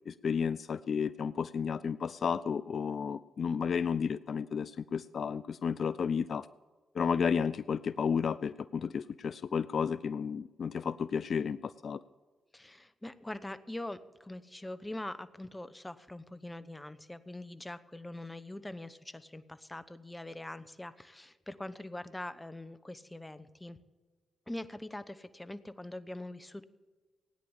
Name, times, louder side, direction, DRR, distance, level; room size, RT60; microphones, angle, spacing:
voice 1, 0.1-6.5 6.9-12.0, left 6 dB, 60° left, 16 dB, 0.3 m, -32 dB
voice 2, 12.5-23.8 24.5-26.6, left 1 dB, 15° left, 13 dB, 1.0 m, -43 dB
16.5 x 9.7 x 7.3 m, 1.3 s
hypercardioid pair, 40°, 0 cm